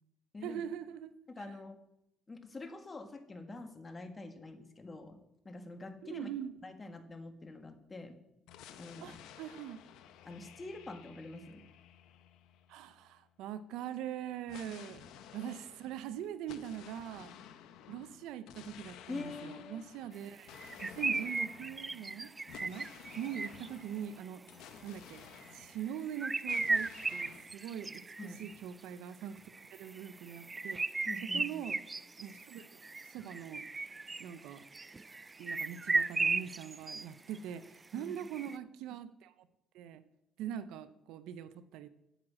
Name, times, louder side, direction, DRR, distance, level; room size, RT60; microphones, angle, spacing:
voice 1, 0.4-1.1 6.0-6.5 9.0-9.8 12.7-15.0 15.3-17.3 17.9-20.5 20.8-22.3 22.6-22.9 23.2-24.4 24.8-25.2 25.5-28.0 28.4-29.4 29.7-31.8 32.2-33.7 34.2-34.6 35.4-39.5 39.7-40.0 40.4-41.9, right 9 dB, 80° right, 14 dB, 0.6 m, -42 dB
voice 2, 1.4-1.8 2.3-5.2 5.5-6.3 6.6-8.2 8.8-9.2 10.3-11.6 19.1-19.8 20.8-20.9 28.2-28.4 31.1-31.7 37.9-38.1, left 2 dB, 30° left, 7 dB, 1.8 m, -45 dB
sound 1, 8.5-13.2 14.5-26.1 26.5-27.5, left 9 dB, 80° left, 0.8 m, -54 dB
sound 2, 20.5-23.8 25.4-25.6 26.0-28.6 29.4-37.0 37.3-37.4 38.2-38.6, right 3 dB, 25° right, 0.4 m, -36 dB
9.1 x 7.7 x 7.4 m, 0.84 s
supercardioid pair, 75°, 0 cm